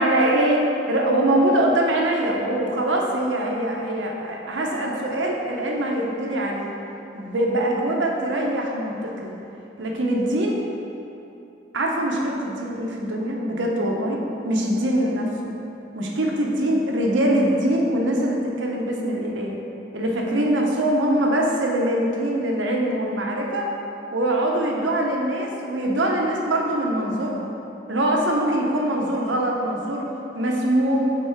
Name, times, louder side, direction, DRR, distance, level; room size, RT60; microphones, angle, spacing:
voice 1, 0.0-6.7 7.1-9.3 9.8-10.6 11.7-15.5 15.9-19.6 19.9-23.7 24.1-27.5 27.9-31.2, right 1 dB, 80° right, -1 dB, 0.8 m, -23 dB
5.6 x 3.8 x 4.5 m, 2.9 s
head